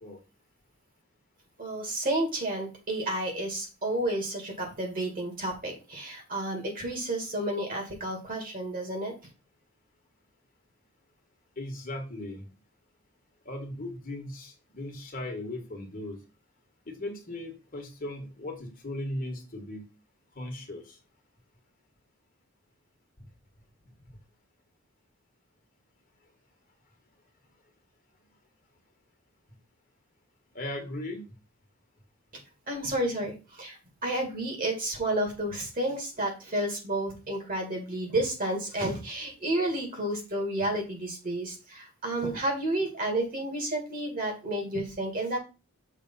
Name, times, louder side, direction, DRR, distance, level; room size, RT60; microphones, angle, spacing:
voice 1, 1.6-9.1 32.7-45.4, right 1 dB, 40° right, 1 dB, 2.2 m, -31 dB
voice 2, 11.6-12.4 13.4-16.2 16.9-19.8 20.3-21.0 24.1-24.2 30.5-31.2, left 1 dB, 40° left, 3 dB, 1.5 m, -37 dB
6.3 x 3.5 x 5.5 m, 0.31 s
head